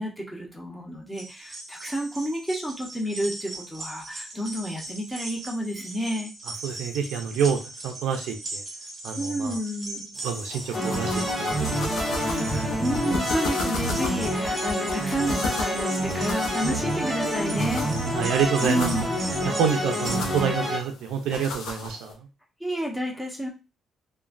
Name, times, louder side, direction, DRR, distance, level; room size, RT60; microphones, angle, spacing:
voice 1, 0.0-6.3 9.2-10.1 12.8-17.9 18.6-19.0 22.6-23.5, equal, 5° left, -1 dB, 0.9 m, -30 dB
sound 1, 1.1-20.2, right 2 dB, 30° right, 0.7 m, -39 dB
voice 2, 6.6-7.6 7.8-8.6 9.0-9.5 10.2-11.9 12.2-12.7 18.1-18.9 19.4-22.1, right 7 dB, 90° right, 3 dB, 0.4 m, -27 dB
sound 2, 10.2-22.1, left 3 dB, 75° left, 0.6 m, -36 dB
sound 3, 10.7-20.8, equal, 10° right, 1.3 m, -28 dB
3.0 x 2.2 x 2.5 m, 0.29 s
cardioid pair, 90°, 0 cm